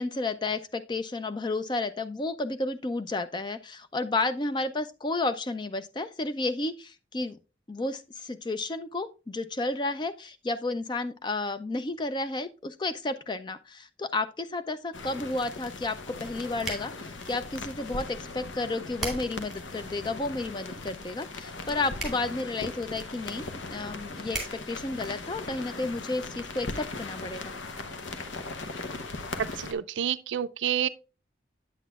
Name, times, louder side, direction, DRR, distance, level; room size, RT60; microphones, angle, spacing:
voice 1, 0.0-7.4 7.7-27.5, left 2 dB, 25° left, 0.4 m, -32 dB
sound 1, 14.9-29.7, left 3 dB, 90° left, 0.8 m, -39 dB
sound 2, 15.9-25.8, right 2 dB, ahead, 2.2 m, -43 dB
voice 2, 29.4-30.9, right 9 dB, 85° right, 0.4 m, -29 dB
8.2 x 8.0 x 2.3 m
head